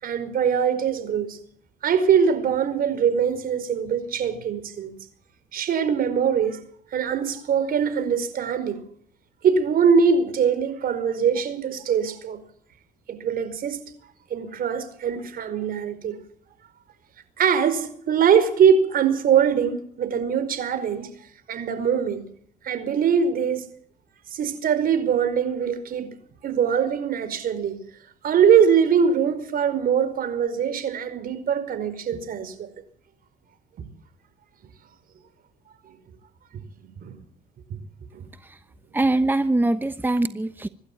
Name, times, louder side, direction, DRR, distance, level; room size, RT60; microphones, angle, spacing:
voice 1, 0.0-1.4 1.8-4.9 5.5-6.6 6.9-8.8 9.4-12.4 13.1-13.8 14.3-16.2 17.4-21.1 21.5-22.2 22.6-23.7 24.3-26.1 26.4-27.8 28.2-32.7 35.9-36.0 37.0-37.2 38.1-38.2, right 7 dB, 60° right, 5.0 m, -22 dB
voice 2, 38.9-40.7, right 2 dB, 10° right, 1.1 m, -23 dB
25.5 x 12.0 x 8.9 m
supercardioid pair, 85°, 17 cm